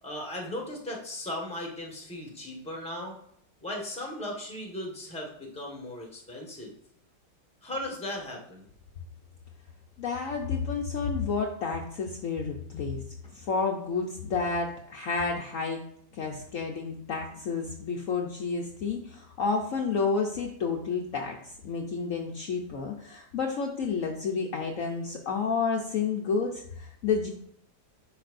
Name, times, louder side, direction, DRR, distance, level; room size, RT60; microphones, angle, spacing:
voice 1, 0.0-3.2 3.6-6.7 7.6-8.7, left 1 dB, 5° left, 0 dB, 1.3 m, -37 dB
voice 2, 10.0-13.0 13.3-15.8 16.1-27.3, left 5 dB, 60° left, 1 dB, 1.0 m, -30 dB
10.0 x 5.4 x 2.6 m, 0.70 s
omnidirectional pair, 1.8 m